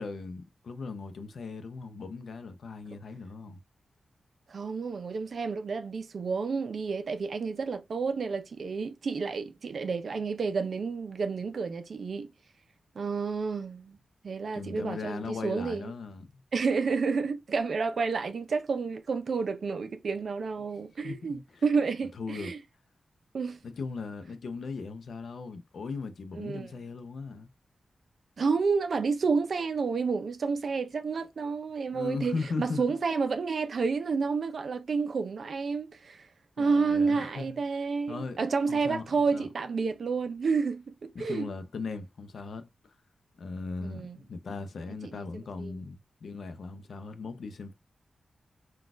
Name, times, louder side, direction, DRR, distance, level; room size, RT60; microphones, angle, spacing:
voice 1, 0.0-3.6 14.5-16.4 21.0-21.6 22.1-22.6 23.6-27.5 31.9-33.0 36.6-37.6 38.1-38.4 38.7-39.5 41.1-42.9 43.4-47.7, left 4 dB, 70° left, 0.5 m, -38 dB
voice 2, 4.5-12.3 13.0-14.0 14.2-15.9 16.5-22.6 23.3-23.6 26.4-26.7 28.4-36.3 36.6-41.5 43.8-44.2 45.1-45.2 45.6-45.8, right 4 dB, 60° right, 0.5 m, -30 dB
3.9 x 2.3 x 2.4 m
wide cardioid pair, 145°, 0 cm